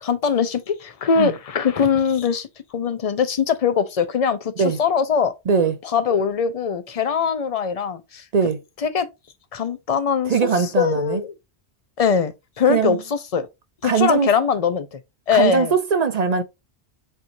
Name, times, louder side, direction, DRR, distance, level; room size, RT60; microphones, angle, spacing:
voice 1, 0.0-5.3 5.8-8.2 8.8-9.1 9.5-10.3 10.8-11.3 12.0-13.5 13.8-15.0 15.3-15.7, left 6 dB, 45° left, 0.5 m, -21 dB
voice 2, 10.3-11.2 12.7-13.0 13.8-14.3 15.3-16.4, right 6 dB, 50° right, 0.5 m, -20 dB
6.6 x 3.0 x 2.6 m
omnidirectional pair, 1.1 m